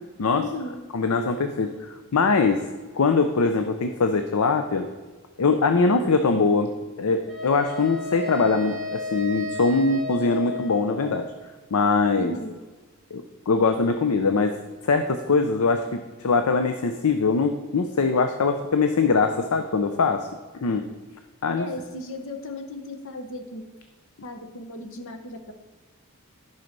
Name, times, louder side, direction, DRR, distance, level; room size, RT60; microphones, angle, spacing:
voice 1, 0.3-0.8 12.2-12.6 21.6-23.6 24.2-25.5, left 1 dB, 60° left, 7 dB, 0.9 m, -36 dB
voice 2, 0.9-2.6 2.9-4.9 5.4-6.7 7.0-11.3 11.7-12.4 13.1-14.5 14.8-20.3 20.6-20.8 21.4-21.7, left 4 dB, 80° left, 7 dB, 0.6 m, -22 dB
Wind instrument woodwind instrument, 7.3-11.4, left 3 dB, ahead, 2.2 m, -34 dB
11.0 x 5.7 x 5.2 m, 1.3 s
head